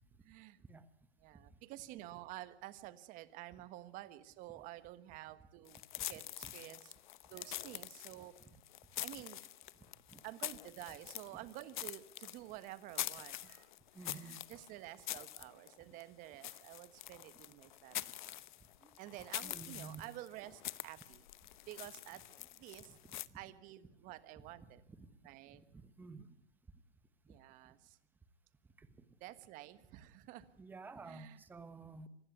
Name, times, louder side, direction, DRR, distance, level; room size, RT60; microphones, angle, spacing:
voice 1, 0.2-0.6 1.2-5.8 6.1-6.9 7.3-8.3 9.0-9.4 10.2-13.7 14.0-18.1 19.0-21.2 21.7-22.2 22.6-22.9 23.3-24.8 25.2-25.6 27.3-28.0 29.2-30.4 31.1-31.4, right 15 dB, 20° right, 14 dB, 1.4 m, -50 dB
sound 1, 5.7-23.3, left 14 dB, 40° left, 0.9 m, -46 dB
voice 2, 13.9-14.4 18.8-18.9 19.3-20.0 22.9-23.0 23.3-23.4 24.9-25.1 25.5-26.3 28.8-28.9 30.6-32.1, right 4 dB, 5° right, 13 dB, 1.1 m, -51 dB
25.5 x 19.5 x 9.6 m, 0.74 s
hypercardioid pair, 145°, 35 cm